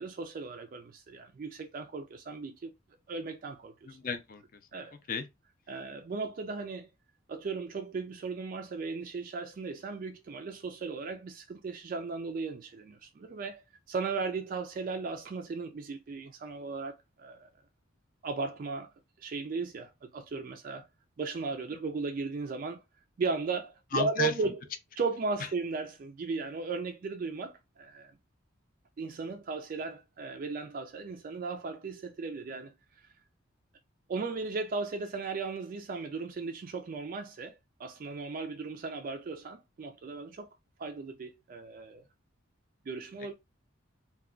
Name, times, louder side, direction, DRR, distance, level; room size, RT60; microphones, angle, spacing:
voice 1, 0.0-2.7 3.1-4.0 4.7-4.9 5.7-6.9 7.3-13.6 13.9-17.5 18.2-18.9 19.2-20.9 21.2-22.8 23.2-24.6 25.0-28.1 29.0-32.7 34.1-40.5 40.8-42.0 42.9-43.3, right 4 dB, 40° right, 0.3 m, -36 dB
voice 2, 3.8-4.6 5.1-5.2 23.9-24.3, left 4 dB, 40° left, 0.4 m, -33 dB
2.2 x 2.2 x 3.6 m
head